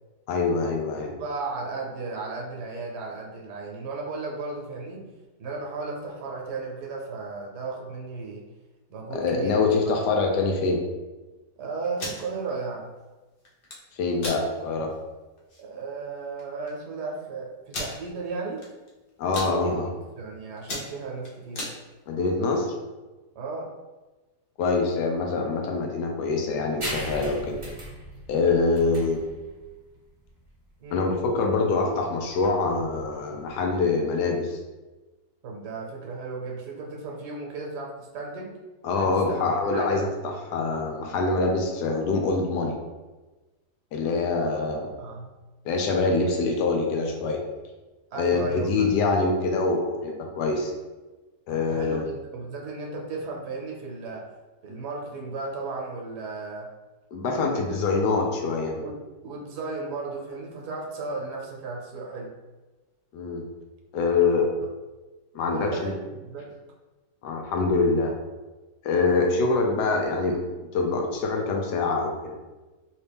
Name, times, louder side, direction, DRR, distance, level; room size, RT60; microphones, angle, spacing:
voice 1, 0.3-1.1 9.1-10.8 13.9-14.9 19.2-19.9 22.1-22.7 24.6-27.6 28.3-29.2 30.9-34.6 38.8-40.1 40.5-42.8 43.9-44.9 45.6-47.4 48.2-50.7 51.5-52.0 57.1-58.9 63.1-63.4 63.9-64.5 65.3-65.9 67.2-68.1 68.8-70.4 70.7-72.4, left 3 dB, 80° left, 2 dB, 1.2 m, -25 dB
voice 2, 1.0-5.1 5.4-8.5 8.9-9.7 11.6-12.9 15.6-18.7 19.5-19.9 20.2-21.7 23.3-23.7 30.8-31.0 35.4-38.6 38.9-39.4 39.7-40.0 45.0-45.3 48.1-48.9 51.5-54.2 54.6-56.7 57.3-57.8 58.8-62.3 65.5-66.5 69.0-69.4, right 3 dB, 75° right, -1 dB, 1.3 m, -35 dB
sound 1, 11.8-12.2 13.4-13.8 14.2-14.4 14.9-15.0 15.4-15.6 16.4-16.5 16.7-16.8 17.7-18.0 18.6-18.9 19.2-19.5 20.1-20.3 20.6-21.7, left 1 dB, 50° left, 0.6 m, -34 dB
sound 2, 26.8-33.9, right 1 dB, 30° right, 0.6 m, -39 dB
3.3 x 2.8 x 3.4 m, 1.2 s
omnidirectional pair, 1.8 m